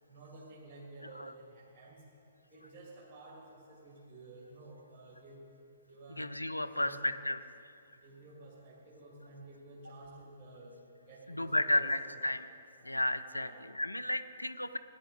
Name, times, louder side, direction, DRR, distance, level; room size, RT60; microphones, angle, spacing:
voice 1, 0.1-2.0 2.5-5.5 5.8-6.3 6.6-7.1 7.9-10.7 11.0-12.3 12.8-13.1 13.3-13.6, right 2 dB, 25° right, -4 dB, 2.4 m, -52 dB
voice 2, 6.2-7.4 11.3-12.5 12.8-14.8, left 1 dB, 90° left, 10 dB, 0.4 m, -33 dB
16.5 x 10.0 x 4.0 m, 2.5 s
figure-of-eight pair, 120°, 0 cm